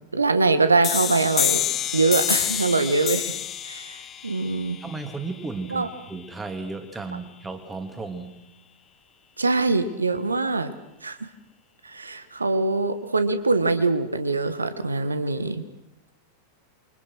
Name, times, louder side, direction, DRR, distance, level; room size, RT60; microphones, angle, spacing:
voice 1, 0.1-1.6 1.9-3.3 3.7-4.0 4.2-4.8 5.7-5.9 9.4-10.7 11.0-11.2 11.8-15.6, right 3 dB, 80° right, 11 dB, 1.7 m, -23 dB
sound 1, 0.8-6.2, left 10 dB, 30° left, 1.0 m, -28 dB
voice 2, 4.8-8.4, right 3 dB, 15° right, 7 dB, 2.8 m, -34 dB
28.0 x 24.5 x 6.3 m, 0.86 s
figure-of-eight pair, 90°, 0 cm